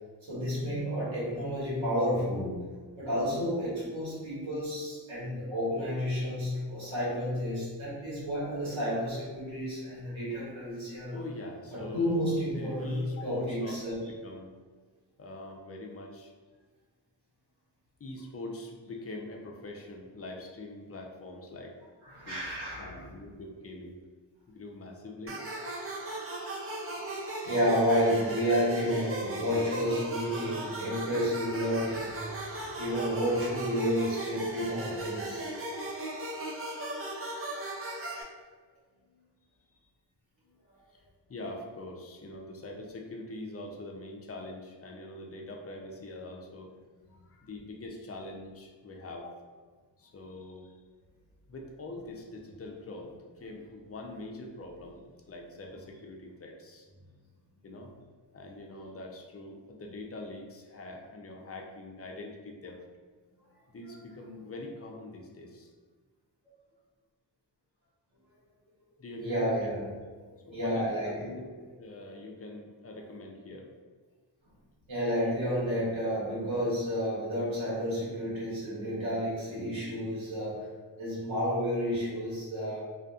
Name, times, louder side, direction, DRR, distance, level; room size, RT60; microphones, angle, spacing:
voice 1, 0.2-2.6 3.0-11.2 11.7-14.0 22.0-23.0 27.4-35.5 69.2-69.9 70.4-71.3 74.9-80.7 81.0-82.8, equal, 90° right, -8 dB, 1.2 m, -31 dB
voice 2, 11.1-12.2 12.5-14.5 15.2-16.3 18.0-21.8 22.3-24.0 24.5-25.5 39.0-39.9 40.4-40.6 40.9-46.7 47.1-49.4 50.0-50.8 51.5-56.9 57.6-57.9 58.3-62.8 63.7-65.7 69.0-69.7 70.5-71.5 71.8-73.7, left 2 dB, 35° left, 1 dB, 0.5 m, -44 dB
sound 1, 25.3-38.2, right 2 dB, 30° right, 0.5 m, -37 dB
2.5 x 2.4 x 2.4 m, 1.5 s
cardioid pair, 40°, 45 cm